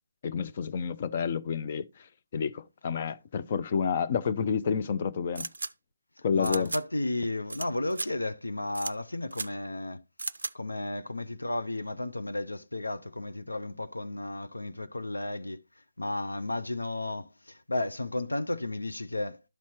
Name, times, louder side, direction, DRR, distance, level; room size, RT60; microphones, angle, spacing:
voice 1, 0.2-2.1 2.3-5.5 6.2-6.7, left 6 dB, 40° left, 0.5 m, -29 dB
sound 1, 5.4-5.7 6.4-6.8 7.5-7.7 7.9-8.1 8.7-8.9 9.3-9.5 10.2-10.5, right 3 dB, 70° right, 0.4 m, -35 dB
voice 2, 6.3-10.0 10.5-15.6 16.0-19.4, left 2 dB, 85° left, 0.6 m, -33 dB
12.0 x 4.2 x 3.0 m
figure-of-eight pair, 150°, 0 cm